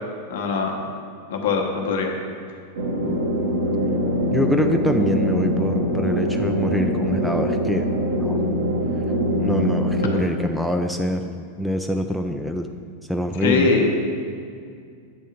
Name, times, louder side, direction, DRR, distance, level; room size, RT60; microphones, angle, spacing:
voice 1, 0.3-0.8 1.3-2.1 13.4-13.9, left 4 dB, 55° left, 2 dB, 0.9 m, -21 dB
sound 1, 2.8-10.2, equal, 65° right, 1.1 m, -23 dB
voice 2, 4.3-7.9 8.2-8.4 9.4-12.7 13.1-13.7, equal, ahead, 5 dB, 0.3 m, -24 dB
8.1 x 3.6 x 5.7 m, 2.3 s
figure-of-eight pair, 90°, 0 cm